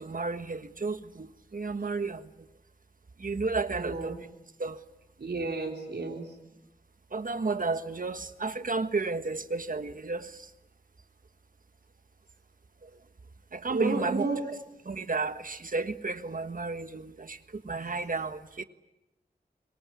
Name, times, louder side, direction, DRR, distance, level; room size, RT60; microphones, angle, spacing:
voice 1, 0.1-0.9 1.5-2.2 3.2-4.1 4.6-4.7 7.1-10.2 13.6-14.2 14.9-16.9 17.7-18.3, right 3 dB, 55° right, 1.5 m, -31 dB
voice 2, 3.8-4.2 5.2-6.3 8.0-8.2 13.7-14.4, right 3 dB, 80° right, 3.9 m, -32 dB
25.0 x 23.5 x 9.7 m
wide cardioid pair, 80°, 17 cm